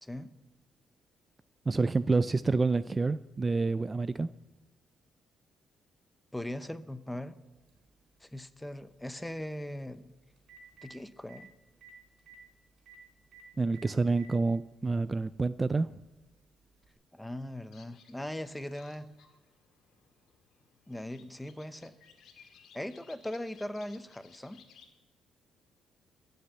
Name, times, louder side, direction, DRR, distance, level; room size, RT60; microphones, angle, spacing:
voice 1, 0.0-0.3 6.3-7.3 8.2-10.1 10.8-11.5 17.1-19.1 20.9-21.9 22.7-24.6, left 1 dB, 5° left, 13 dB, 0.7 m, -39 dB
voice 2, 1.7-4.3 13.6-15.9, right 3 dB, 25° right, 15 dB, 0.3 m, -28 dB
Telephone, 7.7-7.8 9.9-10.0 10.4-10.9 11.3-11.4 11.8-11.9 12.2-12.4 12.9-13.0 13.3-13.4 13.7-14.3 15.3-15.4 16.8-16.9, right 5 dB, 70° right, 4.1 m, -53 dB
sound 1, 17.7-24.9, left 7 dB, 80° left, 1.8 m, -60 dB
14.5 x 6.7 x 8.0 m, 1.1 s
cardioid pair, 90°, 0 cm